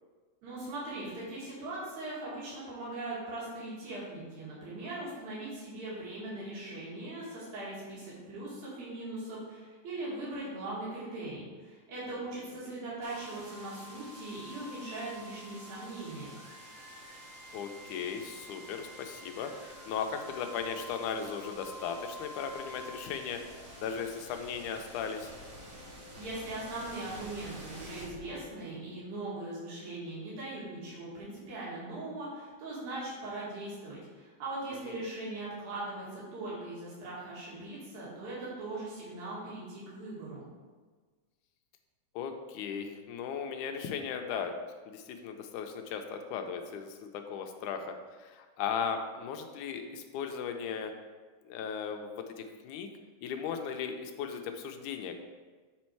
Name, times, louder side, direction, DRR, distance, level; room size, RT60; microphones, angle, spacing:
voice 1, 0.4-16.3 26.2-40.4, right 2 dB, 70° right, -7 dB, 3.4 m, -40 dB
sound 1, 13.0-28.9, equal, 20° right, 2.0 m, -48 dB
voice 2, 17.5-23.4 23.8-25.3 34.9-35.0 42.2-44.5 44.9-50.9 51.5-52.9 53.2-55.2, left 7 dB, 80° left, 5 dB, 2.0 m, -37 dB
7.6 x 4.3 x 4.5 m, 1.4 s
omnidirectional pair, 3.6 m